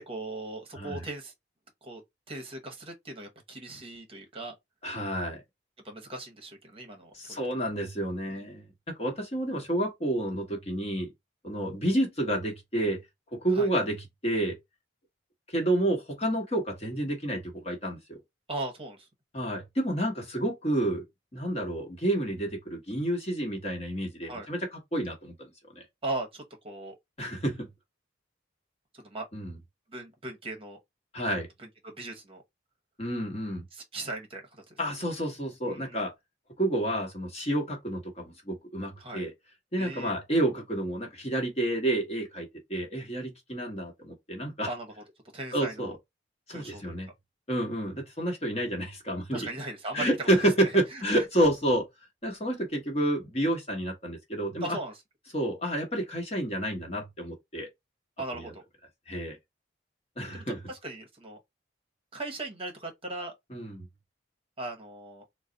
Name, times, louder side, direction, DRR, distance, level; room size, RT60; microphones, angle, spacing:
voice 1, 0.0-1.3 1.8-2.0 2.3-4.5 5.8-7.4 8.3-8.5 13.5-13.7 18.5-19.1 24.2-24.5 26.0-27.0 28.9-29.3 29.9-30.8 31.6-32.4 33.7-34.8 35.6-36.0 39.0-39.2 39.8-40.1 44.7-44.9 45.3-46.0 46.5-47.0 49.3-50.3 50.6-51.0 51.4-51.5 54.6-54.9 58.2-58.6 60.3-61.4 62.1-63.3 64.6-65.2, right 2 dB, 30° right, 0.8 m, -38 dB
voice 2, 4.8-5.4 7.1-8.7 9.0-11.1 11.4-13.0 13.3-14.0 14.2-14.6 15.5-18.2 19.3-21.0 21.3-24.6 24.9-25.5 25.7-25.8 27.2-27.7 29.3-29.5 31.1-31.5 33.0-33.6 34.8-36.1 36.6-39.3 39.7-44.7 45.5-45.9 46.5-47.1 47.5-49.5 49.9-51.8 52.2-54.8 55.3-57.7 58.3-58.5 59.1-59.4 60.2-60.6 63.5-63.9, right 1 dB, 35° left, 1.0 m, -29 dB
3.9 x 2.0 x 3.8 m
head